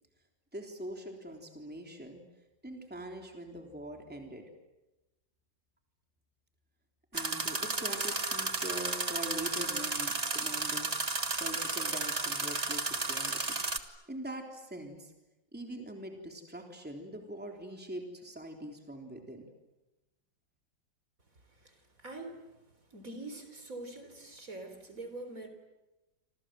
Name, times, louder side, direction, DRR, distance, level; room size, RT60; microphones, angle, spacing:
voice 1, 0.5-2.2 2.6-4.4 7.1-13.6 14.1-15.1 15.5-19.5, right 1 dB, 5° right, 2 dB, 3.5 m, -43 dB
sound 1, 7.1-13.8, right 3 dB, 25° right, 1.5 m, -33 dB
voice 2, 21.6-22.4 22.9-25.5, right 2 dB, 45° right, 7 dB, 4.1 m, -44 dB
27.5 x 27.0 x 7.7 m, 1.0 s
omnidirectional pair, 2.0 m